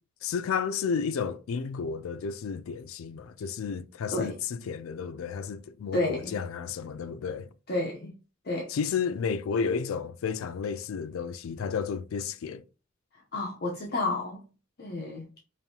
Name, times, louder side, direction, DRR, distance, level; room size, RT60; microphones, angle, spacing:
voice 1, 0.2-7.5 8.7-12.6, left 6 dB, 85° left, 0.4 m, -32 dB
voice 2, 5.9-6.4 7.7-8.1 8.4-8.7 13.3-14.4 14.8-15.2, left 2 dB, 50° left, 0.7 m, -30 dB
5.2 x 2.6 x 2.8 m
head